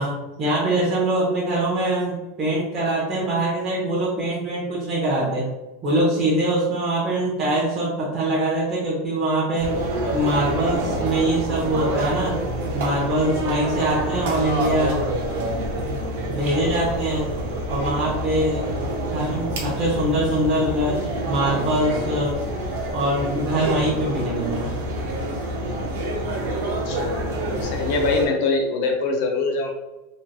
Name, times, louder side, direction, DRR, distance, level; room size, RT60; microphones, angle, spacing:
voice 1, 0.0-5.5 5.8-9.7 10.1-12.4 12.7-15.0 15.9-16.0 16.3-17.3 17.7-18.8 19.1-21.0 21.3-22.4 22.9-24.7, right 1 dB, 25° right, -7 dB, 0.6 m, -23 dB
sound 1, 9.6-28.2, right 1 dB, 80° right, 0.8 m, -27 dB
voice 2, 26.6-27.3 27.6-29.7, left 3 dB, 50° left, 2 dB, 0.4 m, -24 dB
3.0 x 2.5 x 2.2 m, 1.0 s
supercardioid pair, 170°, 0 cm